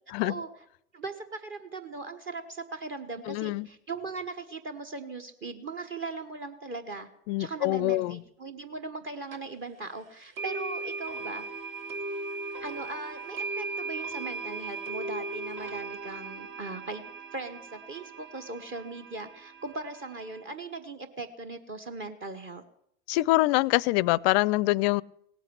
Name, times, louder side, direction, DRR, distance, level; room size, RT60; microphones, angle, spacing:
voice 1, 0.1-0.4 3.3-3.7 7.3-8.2 23.1-25.0, left 19 dB, 50° left, 24 dB, 0.5 m, -25 dB
voice 2, 0.9-7.1 7.4-11.4 12.6-22.6, right 3 dB, 30° right, 6 dB, 1.3 m, -39 dB
sound 1, 9.3-9.4 10.4-20.4, right 3 dB, 50° right, 2.3 m, -38 dB
18.0 x 8.2 x 7.9 m, 0.70 s
hypercardioid pair, 95°, 39 cm